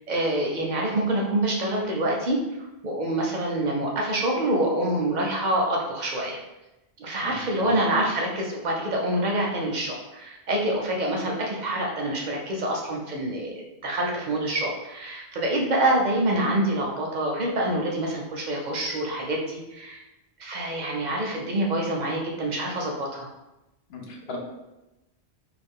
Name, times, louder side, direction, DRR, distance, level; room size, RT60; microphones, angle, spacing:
voice 1, 0.0-2.4 2.8-6.4 7.0-13.5 13.8-20.0 20.4-23.3, right 1 dB, 55° right, -1 dB, 0.5 m, -26 dB
voice 2, 7.2-7.7 23.9-24.4, left 3 dB, 70° left, -1 dB, 0.9 m, -38 dB
2.4 x 2.3 x 3.5 m, 0.97 s
omnidirectional pair, 1.1 m